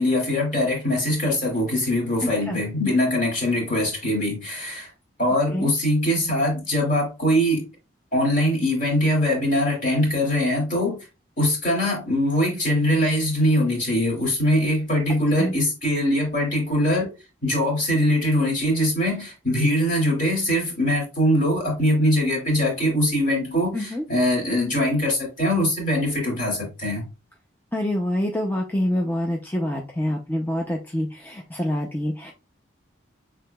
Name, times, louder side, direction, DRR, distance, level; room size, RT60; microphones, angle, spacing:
voice 1, 0.0-4.9 5.2-7.7 8.1-11.0 11.4-17.1 17.4-27.0, left 1 dB, 40° left, 2.4 m, -22 dB
voice 2, 23.7-24.0 27.7-32.3, left 1 dB, 10° left, 0.5 m, -26 dB
6.3 x 3.7 x 2.2 m
head